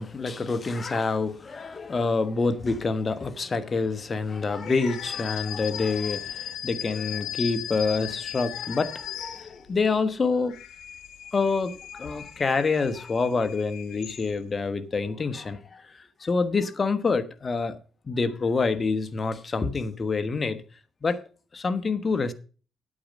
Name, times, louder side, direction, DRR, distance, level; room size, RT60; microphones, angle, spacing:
voice 1, 0.0-10.6 11.3-17.8 18.1-20.6 21.0-21.2 21.5-22.3, left 4 dB, 35° left, 1.1 m, -27 dB
sound 1, 4.6-9.9 10.3-14.6, left 11 dB, 85° left, 1.0 m, -38 dB
8.7 x 8.7 x 5.2 m
cardioid pair, 90°, 0 cm